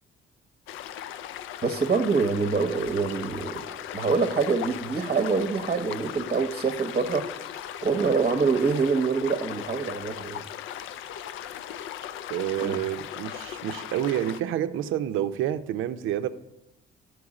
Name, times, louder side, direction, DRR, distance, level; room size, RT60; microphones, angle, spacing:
sound 1, 0.7-14.4, left 10 dB, 85° left, 0.5 m, -38 dB
voice 1, 1.6-7.2 7.8-10.4 12.6-12.8, right 4 dB, 35° right, 6 dB, 0.8 m, -25 dB
voice 2, 12.3-16.3, right 11 dB, 80° right, 11 dB, 0.5 m, -28 dB
12.0 x 4.6 x 4.8 m, 0.96 s
cardioid pair, 90°, 20 cm